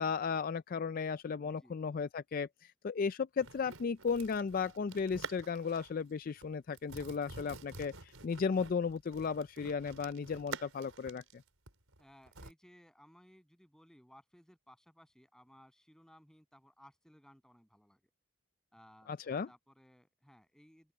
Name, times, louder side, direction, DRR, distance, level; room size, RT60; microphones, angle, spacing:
voice 1, 0.0-11.4 19.1-19.5, left 5 dB, 40° left, 0.3 m, -35 dB
voice 2, 1.2-1.8 12.0-18.1 18.7-20.9, equal, 5° left, 7.7 m, -61 dB
sound 1, 3.4-6.0 6.3-6.5 6.7-12.5, right 4 dB, 75° right, 5.5 m, -48 dB
open air
head